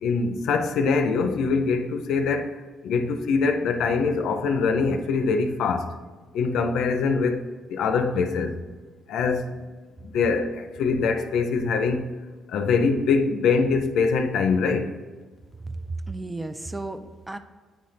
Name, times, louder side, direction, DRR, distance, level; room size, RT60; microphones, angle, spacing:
voice 1, 0.0-5.9 6.3-8.6 9.1-9.6 10.0-12.1 12.5-14.9, left 4 dB, 80° left, 0.5 m, -23 dB
voice 2, 15.6-17.4, right 2 dB, 15° right, 0.4 m, -33 dB
8.9 x 4.0 x 3.2 m
cardioid pair, 90°, 0 cm